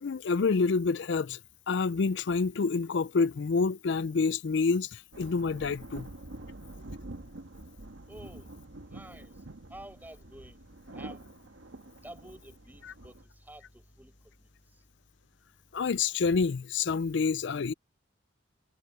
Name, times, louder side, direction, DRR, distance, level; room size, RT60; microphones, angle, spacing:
voice 1, 0.0-1.4 1.7-6.1 15.7-17.7, left 4 dB, 65° left, 0.4 m, -28 dB
sound 1, 5.1-13.2, right 2 dB, 85° right, 1.5 m, -46 dB
voice 2, 8.1-8.5 8.9-9.4 9.7-10.6 10.9-11.2 12.0-14.1 14.4-14.8, right 1 dB, 10° right, 5.5 m, -50 dB
head